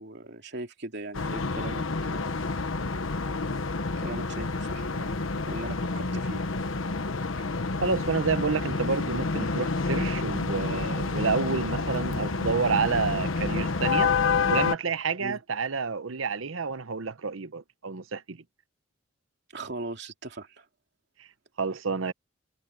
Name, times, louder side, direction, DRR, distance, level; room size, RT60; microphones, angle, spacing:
voice 1, 0.0-2.4 4.0-5.2 5.4-6.4 15.2-15.4 19.5-20.6, right 2 dB, 60° right, 2.7 m, -39 dB
sound 1, 1.1-14.8, left 4 dB, 80° left, 1.2 m, -29 dB
voice 2, 7.8-14.1 14.5-18.4 21.2-21.3 21.6-22.1, right 5 dB, 90° right, 0.9 m, -29 dB
head